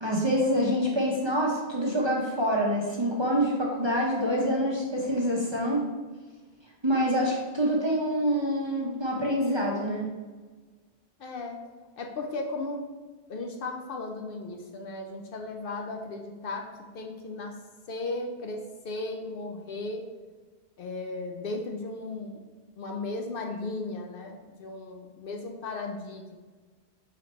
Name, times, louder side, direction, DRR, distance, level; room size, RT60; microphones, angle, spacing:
voice 1, 0.0-5.8 6.8-10.1, equal, 30° right, -3 dB, 0.6 m, -26 dB
voice 2, 11.2-11.6 12.0-12.8 13.3-16.7 16.9-17.6 17.9-20.0 20.8-22.4 22.8-26.4, left 2 dB, 65° left, 3 dB, 0.7 m, -36 dB
4.0 x 3.2 x 4.2 m, 1.3 s
omnidirectional pair, 1.1 m